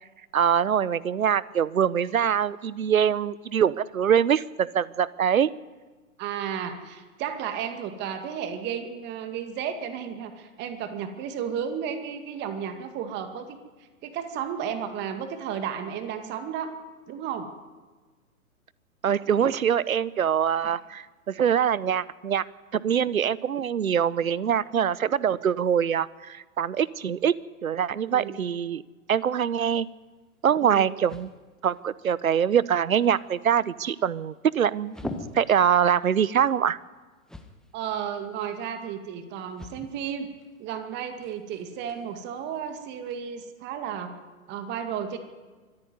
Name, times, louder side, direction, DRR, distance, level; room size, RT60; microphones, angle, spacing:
voice 1, 0.3-5.5 19.0-22.4 22.7-27.4 27.6-28.8 29.1-29.9 30.4-31.3 31.6-35.0 35.3-36.8, right 8 dB, 70° right, 20 dB, 1.0 m, -24 dB
voice 2, 6.2-13.6 14.0-16.7 17.1-17.5 20.6-20.8 28.1-28.5 30.6-31.0 37.7-40.3 40.6-44.1 44.5-45.2, right 8 dB, 25° right, 7 dB, 2.1 m, -33 dB
sound 1, 29.8-43.2, left 1 dB, ahead, 1.3 m, -47 dB
24.5 x 14.0 x 9.5 m, 1.3 s
figure-of-eight pair, 120°, 43 cm